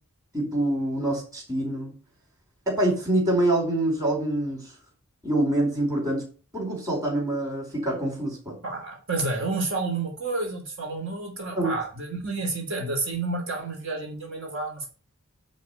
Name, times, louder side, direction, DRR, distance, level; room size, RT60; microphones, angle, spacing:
voice 1, 0.3-1.9 2.7-4.7 5.2-6.3 6.5-8.6 11.5-11.7, right 1 dB, 15° right, -1 dB, 4.4 m, -25 dB
voice 2, 8.6-14.9, right 3 dB, 60° right, 0 dB, 3.2 m, -30 dB
10.5 x 4.3 x 7.0 m, 0.36 s
head